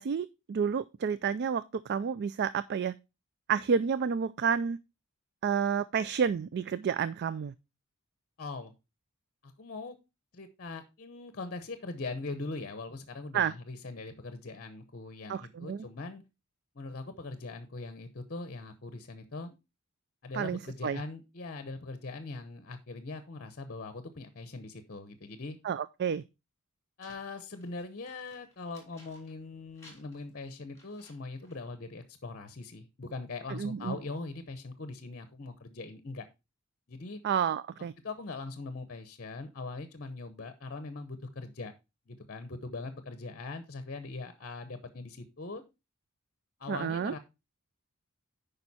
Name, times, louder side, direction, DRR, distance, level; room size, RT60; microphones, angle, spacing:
voice 1, 0.0-2.9 3.5-4.8 5.4-7.5 13.3-13.5 15.3-15.9 20.3-21.0 25.6-26.2 33.5-34.0 37.2-37.9 46.7-47.1, right 7 dB, 50° right, 0.3 m, -30 dB
voice 2, 8.4-8.7 9.4-10.0 10.3-16.2 16.7-19.5 20.2-25.6 27.0-36.3 36.9-37.2 38.0-41.7 42.1-45.6 46.6-47.2, left 3 dB, 45° left, 0.8 m, -41 dB
sound 1, 27.0-29.5 29.7-31.7, left 2 dB, 15° left, 3.4 m, -59 dB
9.0 x 5.3 x 4.1 m
head